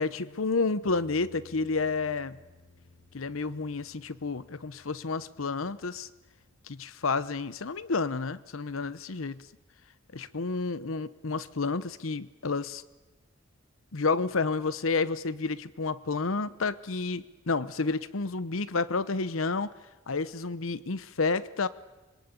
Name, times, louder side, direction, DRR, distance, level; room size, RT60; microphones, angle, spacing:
voice 1, 0.0-2.4 3.1-6.1 6.6-9.4 10.1-12.8 13.9-19.7 20.1-21.7, left 4 dB, 80° left, 16 dB, 0.9 m, -30 dB
sound 1, 0.9-9.0, left 3 dB, ahead, 4.3 m, -59 dB
25.0 x 22.5 x 9.8 m, 1.1 s
head